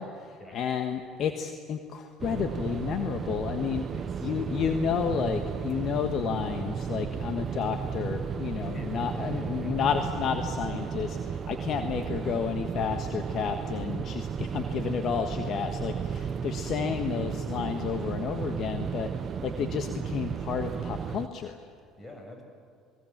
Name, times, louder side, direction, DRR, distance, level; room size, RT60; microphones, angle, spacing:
voice 1, 0.0-3.9 4.2-19.1 19.4-21.6, left 7 dB, 55° left, 6 dB, 1.5 m, -31 dB
sound 1, 2.2-21.3, right 7 dB, 45° right, 0.7 m, -34 dB
voice 2, 3.9-4.3 8.6-9.8 21.9-22.4, left 1 dB, 25° left, 3 dB, 7.1 m, -45 dB
27.0 x 21.0 x 7.4 m, 2.3 s
supercardioid pair, 80°, 0 cm